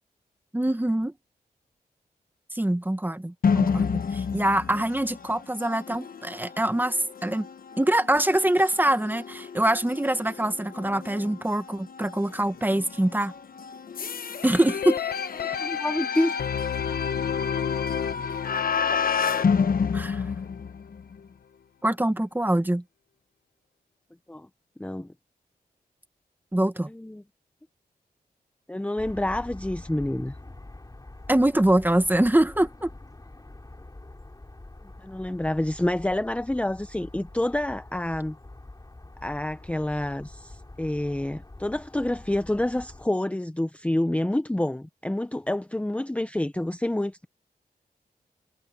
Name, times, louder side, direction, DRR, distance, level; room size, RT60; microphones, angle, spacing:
voice 1, 0.5-1.1 2.5-7.5 7.8-13.3 14.4-15.0 19.9-20.2 21.8-22.8 26.5-26.9 31.3-32.9, right 1 dB, 10° right, 1.5 m, -24 dB
sound 1, 3.4-21.2, left 6 dB, 65° left, 1.2 m, -30 dB
sound 2, 14.7-20.7 21.2-21.3, left 7 dB, 85° left, 1.2 m, -31 dB
voice 2, 15.6-16.3 24.3-24.5 24.8-25.1 26.9-27.2 28.7-30.3 35.0-38.4 39.2-47.3, left 1 dB, 10° left, 0.8 m, -28 dB
sound 3, 29.0-43.1, left 2 dB, 25° left, 3.7 m, -45 dB
cardioid pair, 65°, 16 cm